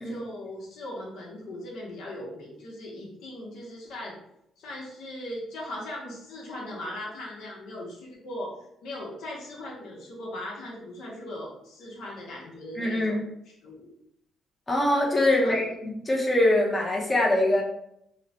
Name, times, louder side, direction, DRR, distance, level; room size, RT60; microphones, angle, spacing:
voice 1, 0.0-4.2 4.6-8.5 8.8-13.2 13.5-13.9 15.3-15.7, left 1 dB, 85° left, -3 dB, 0.8 m, -39 dB
voice 2, 12.8-13.2 14.7-15.7 16.1-17.6, left 1 dB, 20° left, -2 dB, 0.6 m, -23 dB
3.0 x 2.1 x 2.7 m, 0.77 s
cardioid pair, 90°, 0 cm